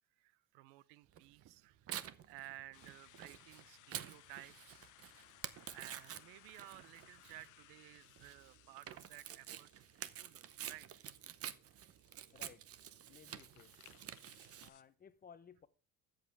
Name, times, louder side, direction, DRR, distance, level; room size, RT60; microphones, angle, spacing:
voice 1, 0.2-5.0 5.7-9.7 10.2-10.9, right 17 dB, 90° right, 0.7 m, -55 dB
Tearing, 1.1-14.7, right 10 dB, 40° right, 0.8 m, -49 dB
sound 1, 2.7-14.8, left 15 dB, 55° left, 0.9 m, -65 dB
voice 2, 12.3-12.7 13.1-13.8 14.6-15.7, left 7 dB, 25° left, 0.8 m, -59 dB
13.5 x 7.8 x 3.4 m
cardioid pair, 140°, 37 cm